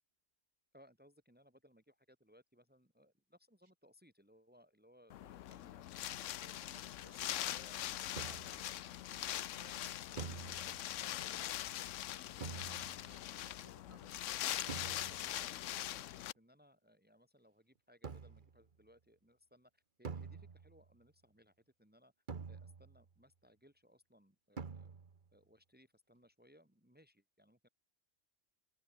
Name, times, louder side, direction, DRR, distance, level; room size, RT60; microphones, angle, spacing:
voice 1, 0.7-6.9 7.4-7.8 14.8-22.1 22.5-24.9 25.3-27.7, equal, 5° right, 3.2 m, -66 dB
Wind, 5.1-16.3, left 13 dB, 85° left, 1.0 m, -42 dB
voice 2, 6.5-8.8 9.1-10.5 11.0-12.6 12.9-14.4, right 3 dB, 25° right, 2.7 m, -63 dB
sound 1, 8.2-8.7 10.2-11.0 12.4-13.2 14.7-15.4 18.0-18.6 20.0-20.9 22.3-23.1 24.6-25.3, right 5 dB, 45° right, 1.3 m, -47 dB
open air
omnidirectional pair, 1.3 m